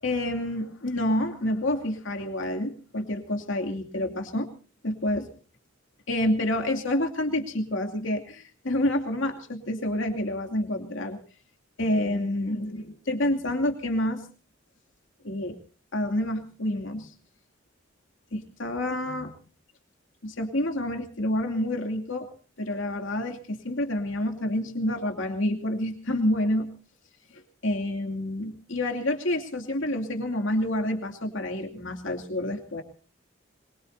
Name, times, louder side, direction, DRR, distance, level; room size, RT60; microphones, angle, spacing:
voice 1, 0.0-4.5 4.8-5.3 6.1-11.2 11.8-14.2 15.2-15.6 15.9-17.1 18.3-19.3 20.2-22.3 22.6-26.7 27.3-32.8, left 1 dB, 75° left, 4 dB, 2.7 m, -28 dB
23.5 x 22.5 x 2.7 m, 0.40 s
head